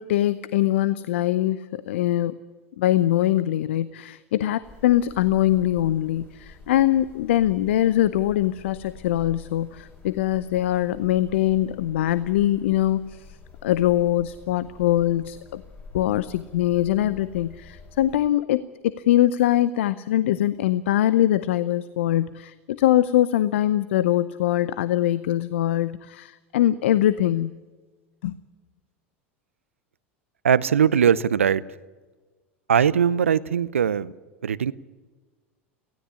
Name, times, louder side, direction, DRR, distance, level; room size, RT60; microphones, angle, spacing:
voice 1, 0.0-2.4 2.8-13.4 13.6-15.6 15.9-27.5 28.2-28.3, left 13 dB, 70° left, 17 dB, 0.7 m, -22 dB
sound 1, 4.6-18.3, left 4 dB, 30° left, 5.5 m, -47 dB
voice 2, 30.4-31.6 32.7-34.1 34.4-34.7, right 8 dB, 80° right, 19 dB, 0.7 m, -20 dB
18.0 x 16.0 x 9.9 m, 1.3 s
figure-of-eight pair, 80°, 7 cm